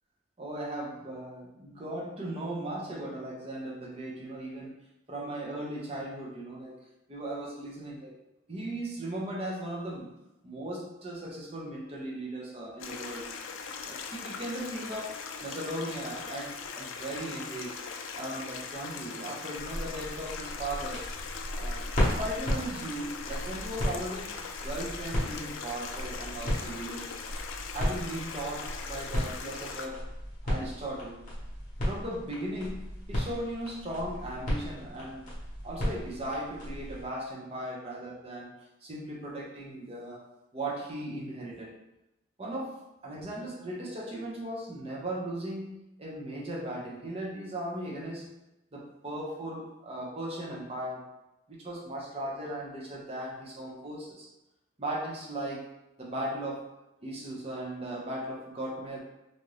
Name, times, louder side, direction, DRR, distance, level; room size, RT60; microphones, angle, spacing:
voice 1, 0.4-4.8 5.1-6.8 7.1-8.1 8.5-10.1 10.4-13.3 13.8-17.8 18.2-21.1 21.5-24.3 24.6-27.2 27.7-30.0 30.4-31.3 31.8-32.8 33.1-35.3 35.6-40.2 40.5-41.8 42.4-42.8 43.0-45.7 46.0-48.3 48.7-51.0 51.5-54.3 54.8-55.7 56.0-56.7 57.0-59.0, right 1 dB, 30° right, -3 dB, 0.6 m, -37 dB
Stream, 12.8-29.9, left 5 dB, 75° left, 0.3 m, -40 dB
sound 1, 19.5-37.1, equal, 40° left, 0.9 m, -35 dB
2.6 x 2.4 x 3.2 m, 0.92 s
head